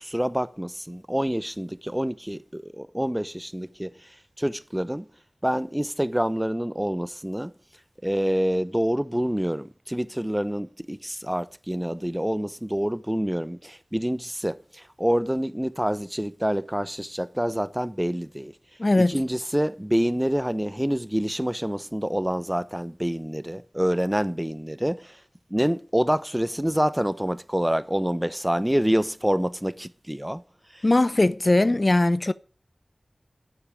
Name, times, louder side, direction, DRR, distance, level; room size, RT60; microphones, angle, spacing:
voice 1, 0.0-3.9 4.4-5.1 5.4-7.5 8.0-18.5 19.0-25.2 25.5-30.4 30.7-30.8, equal, 10° right, 0.8 m, -27 dB
voice 2, 18.8-19.2 30.8-32.3, left 2 dB, 45° left, 0.6 m, -20 dB
9.8 x 8.6 x 8.8 m
wide cardioid pair, 55°, 0 cm